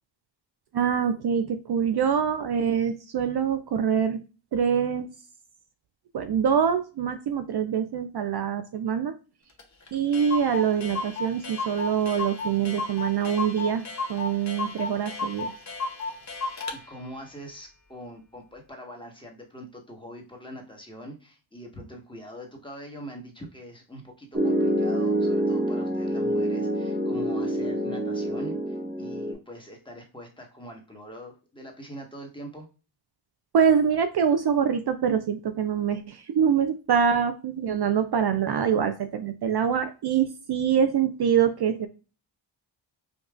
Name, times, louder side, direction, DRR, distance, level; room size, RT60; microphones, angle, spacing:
voice 1, 0.7-4.2 4.5-5.1 6.1-9.2 9.9-13.8 14.1-15.5 33.5-41.9, right 7 dB, 55° right, 9 dB, 0.5 m, -24 dB
Clock, 9.6-9.7 9.9-10.0 10.1-16.8, left 3 dB, 35° left, 0.8 m, -33 dB
voice 2, 16.7-32.7, equal, 10° left, 1 dB, 1.2 m, -43 dB
Piano, 24.3-29.3, right 1 dB, 20° right, 0.9 m, -26 dB
5.2 x 2.3 x 2.4 m, 0.34 s
wide cardioid pair, 75°, 47 cm